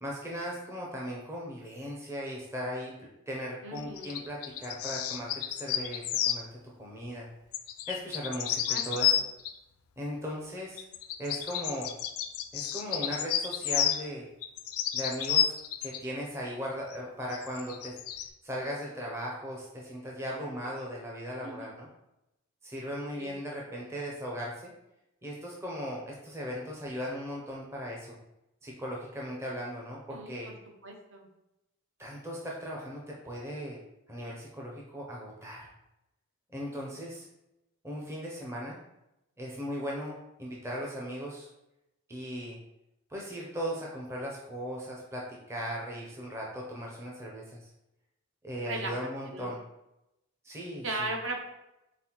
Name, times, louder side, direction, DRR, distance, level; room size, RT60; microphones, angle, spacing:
voice 1, 0.0-2.9 3.3-6.5 6.8-7.3 7.9-9.2 10.0-10.8 11.2-11.9 12.5-14.3 14.9-15.5 15.8-17.9 18.4-21.9 22.6-24.7 25.2-28.2 28.6-30.5 32.0-33.8 34.1-35.7 36.5-37.3 37.8-38.8 39.4-41.5 42.1-42.6 43.1-45.2 45.5-47.6 48.4-49.6 50.4-51.1, equal, 10° right, -3 dB, 0.5 m, -38 dB
voice 2, 3.6-4.1 8.7-9.0 21.4-21.7 23.1-23.3 30.1-30.5 30.8-31.3 48.7-49.5 50.8-51.4, right 2 dB, 55° right, 2 dB, 0.7 m, -37 dB
sound 1, 3.8-6.4 7.5-9.6 10.8-14.1 14.4-16.0 16.9-17.0 17.3-18.3, left 10 dB, 75° left, 0.4 m, -31 dB
4.0 x 3.8 x 2.9 m, 0.89 s
head